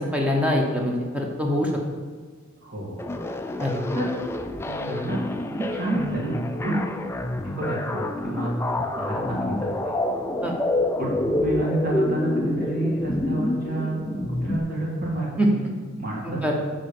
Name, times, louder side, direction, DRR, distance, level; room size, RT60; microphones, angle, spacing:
voice 1, 0.0-1.7 3.6-3.8 6.6-6.8 10.4-10.5 15.4-15.5 16.3-16.6, equal, 5° right, 0 dB, 1.0 m, -24 dB
voice 2, 2.6-3.0 3.9-4.1 4.6-5.2 5.5-6.8 7.4-8.5 8.9-9.9 11.0-15.7 15.9-16.6, right 2 dB, 45° right, -3 dB, 2.0 m, -29 dB
sound 1, 3.0-14.6, left 2 dB, 10° left, 0.3 m, -28 dB
7.2 x 4.2 x 6.8 m, 1.5 s
head